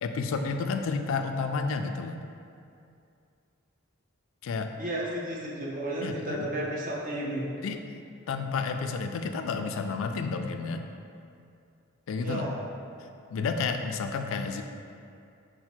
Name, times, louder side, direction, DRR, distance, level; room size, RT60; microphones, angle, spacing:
voice 1, 0.0-2.2 4.4-4.7 6.0-6.5 7.6-7.8 8.3-10.8 12.1-12.5 13.3-14.6, left 4 dB, 70° left, 6 dB, 0.3 m, -31 dB
voice 2, 4.8-7.5 12.2-12.6, right 1 dB, 40° right, -4 dB, 0.7 m, -33 dB
5.7 x 2.1 x 4.4 m, 2.5 s
head